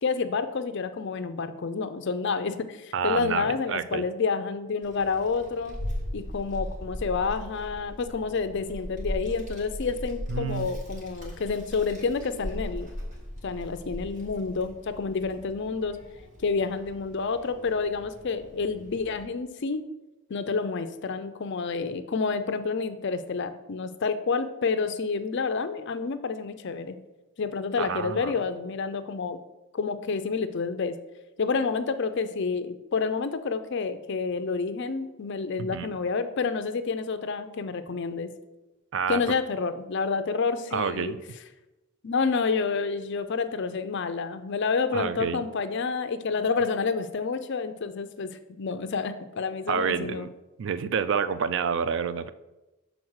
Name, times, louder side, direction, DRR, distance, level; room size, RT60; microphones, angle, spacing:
voice 1, 0.0-5.8 6.1-12.9 13.4-16.0 16.4-19.8 20.3-27.0 27.4-29.4 29.7-30.9 31.4-38.3 39.1-41.1 42.0-48.3 48.6-50.3, left 4 dB, 50° left, 10 dB, 0.5 m, -29 dB
voice 2, 2.9-4.0 10.3-10.7 27.8-28.4 35.6-35.9 38.9-39.2 40.7-41.2 44.9-45.4 49.7-50.3 50.6-52.3, right 6 dB, 55° right, 13 dB, 0.3 m, -28 dB
Child speech kid speaking, 4.8-19.2, equal, 35° right, 1.4 m, -39 dB
6.1 x 3.9 x 6.3 m, 1.0 s
head